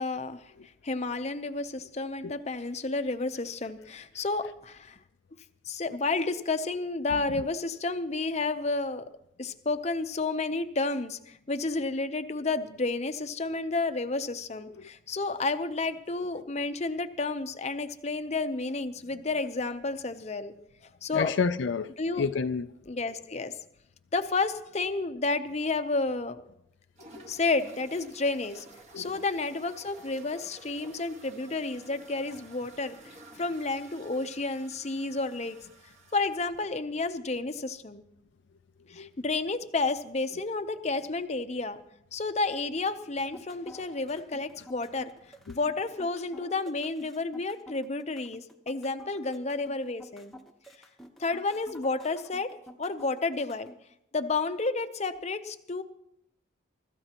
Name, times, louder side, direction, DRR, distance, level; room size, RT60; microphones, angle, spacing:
voice 1, 0.0-5.0 5.7-9.1 9.4-20.5 21.0-21.3 22.0-22.3 22.9-23.6 24.1-26.4 27.3-28.7 29.0-35.6 36.1-38.0 38.9-41.8 42.1-45.1 45.5-50.3 51.2-53.7 54.1-55.8, left 3 dB, 35° left, 0.7 m, -31 dB
voice 2, 21.1-22.7 27.1-27.3 28.9-29.1 39.0-39.1, left 5 dB, 70° left, 0.4 m, -29 dB
sound 1, 27.0-36.6, right 2 dB, 35° right, 1.6 m, -52 dB
sound 2, 43.2-53.8, equal, ahead, 1.0 m, -50 dB
24.5 x 14.0 x 3.0 m
head